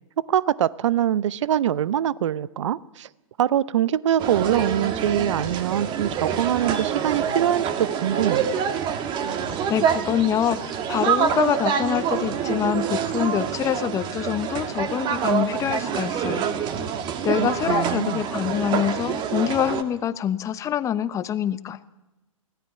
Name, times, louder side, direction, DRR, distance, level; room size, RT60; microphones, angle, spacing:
voice 1, 0.2-3.1 3.4-8.5 17.4-18.2, right 10 dB, 60° right, 19 dB, 0.8 m, -23 dB
sound 1, 4.2-19.8, right 8 dB, 25° right, 1.8 m, -26 dB
voice 2, 9.7-16.5 17.2-21.8, left 10 dB, 20° left, 14 dB, 0.9 m, -25 dB
24.5 x 17.0 x 8.7 m, 0.97 s
hypercardioid pair, 125°, 17 cm